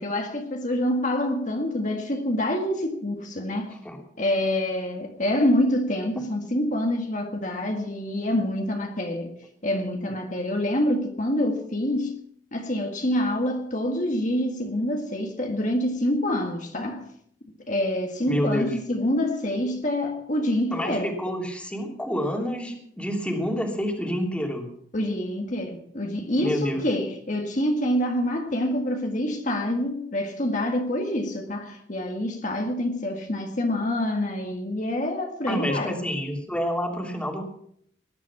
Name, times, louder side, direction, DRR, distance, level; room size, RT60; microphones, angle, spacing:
voice 1, 0.0-3.8 4.2-9.3 9.6-12.2 12.5-17.1 17.7-21.1 24.9-36.0, left 1 dB, 45° left, 1.8 m, -26 dB
voice 2, 18.3-18.7 20.7-24.7 26.4-26.8 35.5-37.5, equal, 5° left, 2.9 m, -28 dB
19.5 x 11.0 x 6.0 m
head